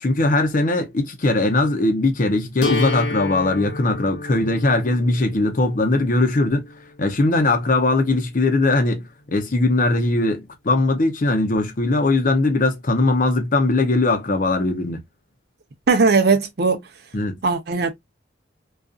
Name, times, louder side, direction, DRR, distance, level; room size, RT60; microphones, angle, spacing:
voice 1, 0.0-6.7 7.0-9.0 9.3-15.0 17.1-17.3, left 2 dB, 45° left, 0.6 m, -20 dB
sound 1, 2.6-8.6, left 3 dB, 75° left, 0.8 m, -32 dB
voice 2, 15.9-16.9 17.4-17.9, right 4 dB, 55° right, 0.5 m, -18 dB
2.5 x 2.3 x 2.3 m
head